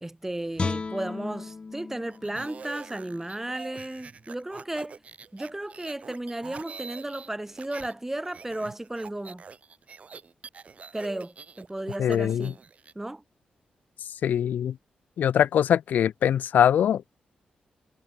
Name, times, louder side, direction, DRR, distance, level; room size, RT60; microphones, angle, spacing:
voice 1, 0.0-5.0 5.3-9.4 10.9-12.6 12.9-13.2, right 1 dB, 10° right, 1.0 m, -34 dB
Guitar, 0.6-3.7 4.1-4.3, left 4 dB, 40° left, 1.2 m, -36 dB
sound 1, 2.1-7.9 8.2-12.9, right 5 dB, 50° right, 3.3 m, -45 dB
voice 2, 12.0-12.5 14.2-14.7 15.2-17.0, left 9 dB, 85° left, 0.5 m, -22 dB
cardioid pair, 75°, 3 cm